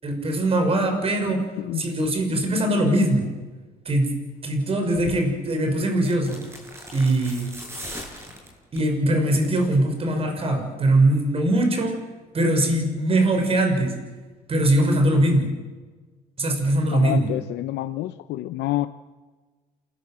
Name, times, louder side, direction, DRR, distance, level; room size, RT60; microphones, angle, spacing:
voice 1, 0.0-1.4 1.8-3.3 3.8-4.2 4.4-6.5 6.9-7.5 8.7-12.0 12.3-14.0 14.5-15.5 16.4-17.3, right 1 dB, 35° right, 5 dB, 6.1 m, -21 dB
voice 2, 1.3-1.9 2.3-2.4 16.9-18.9, left 15 dB, 80° left, 10 dB, 0.9 m, -28 dB
sound 1, 4.9-5.2 6.0-8.9 9.3-9.6 9.9-10.0, equal, 15° right, 7.1 m, -39 dB
28.5 x 20.0 x 7.6 m, 1.3 s
cardioid pair, 110°, 17 cm